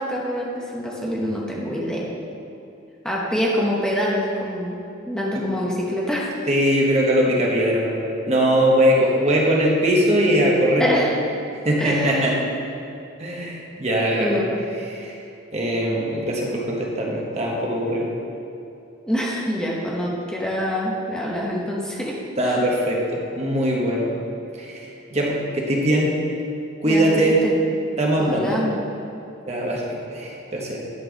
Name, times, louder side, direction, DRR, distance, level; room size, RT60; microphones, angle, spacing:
voice 1, 0.0-2.1 3.0-4.8 5.1-6.3 10.8-11.1 11.8-12.4 14.2-14.6 19.1-22.2 22.4-22.6 26.8-27.6 28.2-28.8, equal, 5° left, -4 dB, 1.1 m, -25 dB
voice 2, 6.5-8.0 8.2-10.8 11.6-12.3 13.2-14.4 14.9-15.1 15.5-18.1 22.4-24.1 24.6-26.1 26.8-27.4 28.0-28.5 29.5-30.8, right 1 dB, 35° right, -3 dB, 1.4 m, -21 dB
11.0 x 4.6 x 6.3 m, 2.8 s
head